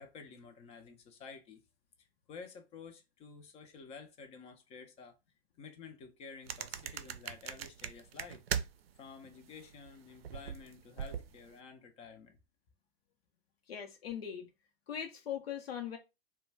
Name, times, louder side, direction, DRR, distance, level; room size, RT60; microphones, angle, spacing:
voice 1, 0.0-1.6 2.0-5.2 5.6-8.4 9.0-12.4, left 5 dB, 20° left, 0.4 m, -51 dB
sound 1, 6.5-9.0 9.2-11.5, right 8 dB, 75° right, 0.5 m, -40 dB
voice 2, 13.7-14.5 14.9-16.0, left 9 dB, 75° left, 0.7 m, -40 dB
2.2 x 2.1 x 3.2 m
figure-of-eight pair, 100°, 30 cm